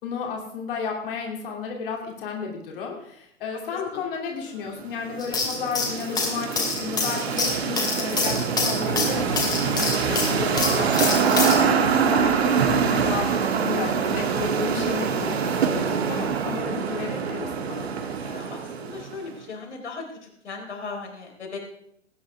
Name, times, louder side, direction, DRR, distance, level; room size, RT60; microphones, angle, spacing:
voice 1, 0.0-17.9, left 5 dB, 45° left, 1 dB, 2.7 m, -33 dB
sound 1, 4.8-19.3, right 6 dB, 55° right, 1.6 m, -25 dB
sound 2, 5.2-11.6, left 4 dB, 10° left, 2.5 m, -26 dB
voice 2, 18.2-20.0 20.4-21.6, left 4 dB, 65° left, 1 dB, 4.1 m, -37 dB
20.0 x 9.6 x 3.5 m, 0.74 s
figure-of-eight pair, 115°, 37 cm